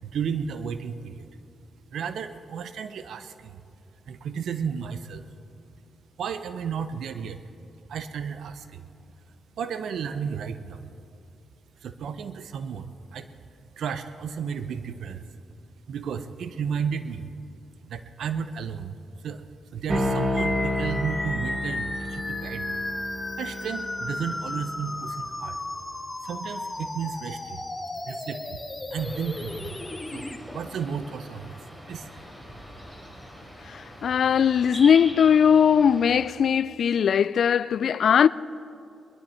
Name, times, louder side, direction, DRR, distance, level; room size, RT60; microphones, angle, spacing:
voice 1, 0.0-1.3 1.9-3.6 4.1-5.3 6.2-7.4 7.9-8.9 9.6-10.8 11.8-13.3 13.8-15.2 15.9-17.3 17.9-19.0 19.2-19.4 19.7-22.8 23.4-25.6 26.2-27.6 28.0-28.6 28.9-29.8 30.1-30.3 30.5-31.5 31.9-32.2, right 7 dB, 75° right, 0.6 m, -33 dB
sound 1, 19.9-24.8, left 1 dB, 30° right, 1.9 m, -30 dB
sound 2, 20.4-30.4, left 2 dB, 20° left, 1.4 m, -34 dB
sound 3, 28.9-36.3, equal, 10° right, 4.6 m, -42 dB
voice 2, 33.7-38.3, left 7 dB, 70° left, 0.3 m, -20 dB
21.0 x 12.0 x 4.4 m
cardioid pair, 65°, 0 cm